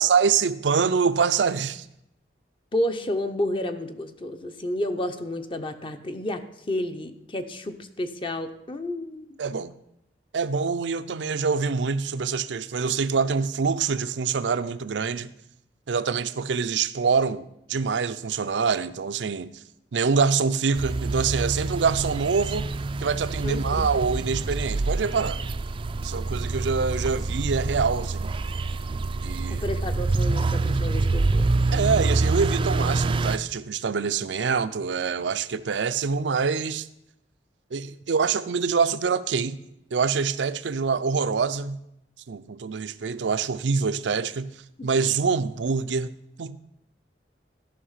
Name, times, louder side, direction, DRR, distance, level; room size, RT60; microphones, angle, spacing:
voice 1, 0.0-1.9 9.4-9.7 10.3-15.3 15.9-19.5 19.9-22.7 23.0-25.4 26.0-28.3 29.2-29.6 31.7-36.9 37.7-39.6 39.9-41.8 42.3-44.5 44.8-46.1 46.4-46.7, right 5 dB, 85° right, 13 dB, 0.5 m, -25 dB
voice 2, 2.7-9.4 23.4-23.8 29.5-31.5, left 1 dB, 30° left, 8 dB, 0.6 m, -31 dB
sound 1, 20.7-33.4, right 3 dB, 30° right, 0.3 m, -26 dB
13.0 x 5.7 x 5.6 m, 0.81 s
head